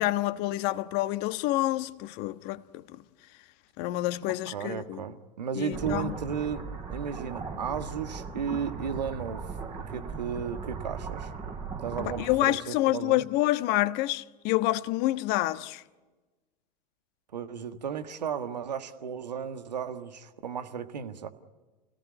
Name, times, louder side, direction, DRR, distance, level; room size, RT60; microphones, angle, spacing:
voice 1, 0.0-2.6 2.9-3.0 3.8-5.0 5.5-6.1 12.2-15.8, left 17 dB, 50° left, 1.3 m, -28 dB
voice 2, 4.5-6.6 6.9-11.3 11.8-13.2 17.3-21.3, right 7 dB, 85° right, 1.6 m, -34 dB
sound 1, 5.7-12.4, right 5 dB, 30° right, 7.6 m, -38 dB
29.0 x 18.0 x 9.7 m
hypercardioid pair, 90°, 21 cm